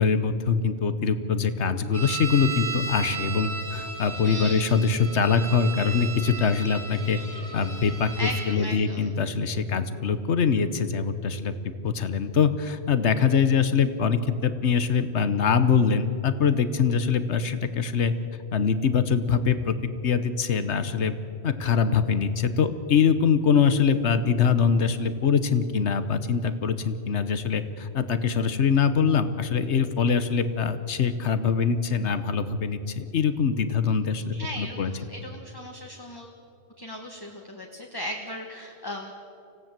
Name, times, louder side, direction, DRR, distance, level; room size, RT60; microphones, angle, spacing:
voice 1, 0.0-7.2 7.5-18.1 18.5-19.8 20.0-21.2 21.4-34.9, left 6 dB, 80° left, 12 dB, 1.3 m, -23 dB
sound 1, 1.9-8.5, right 4 dB, 60° right, 3.1 m, -35 dB
voice 2, 4.2-4.6 8.2-9.1 34.3-36.3 36.8-39.1, equal, 20° left, 1 dB, 1.4 m, -37 dB
25.0 x 16.5 x 7.5 m, 2.9 s
omnidirectional pair, 1.1 m